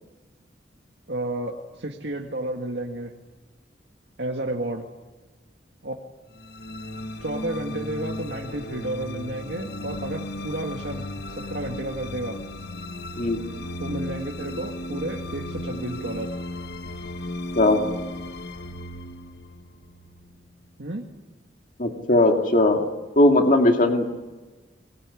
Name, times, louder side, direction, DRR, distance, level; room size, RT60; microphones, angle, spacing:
voice 1, 1.1-3.1 4.2-4.9 5.8-5.9 7.2-11.0 11.4-12.4 13.8-16.3 20.8-21.1, right 1 dB, 65° right, 1 dB, 2.1 m, -31 dB
sound 1, 6.3-20.7, left 1 dB, 60° left, 1.3 m, -35 dB
voice 2, 21.8-22.8 23.2-24.1, left 1 dB, 45° left, 3 dB, 2.3 m, -18 dB
23.0 x 22.0 x 9.9 m, 1.2 s
head